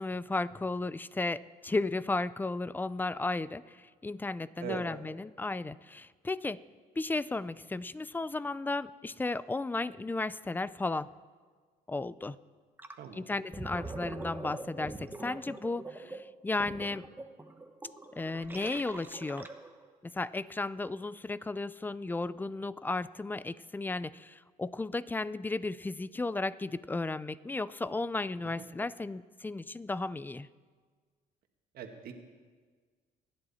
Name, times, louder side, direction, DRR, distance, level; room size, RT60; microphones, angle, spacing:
voice 1, 0.0-6.6 7.0-11.1 11.9-12.4 13.1-17.1 18.1-19.5 20.0-30.5, left 3 dB, 10° left, 17 dB, 0.4 m, -34 dB
Gurgling, 12.8-13.0 13.4-19.9, right 2 dB, 10° right, 1.1 m, -43 dB
voice 2, 31.7-32.1, right 8 dB, 65° right, 4 dB, 1.9 m, -40 dB
28.0 x 11.0 x 4.2 m, 1.5 s
cardioid pair, 110°, 17 cm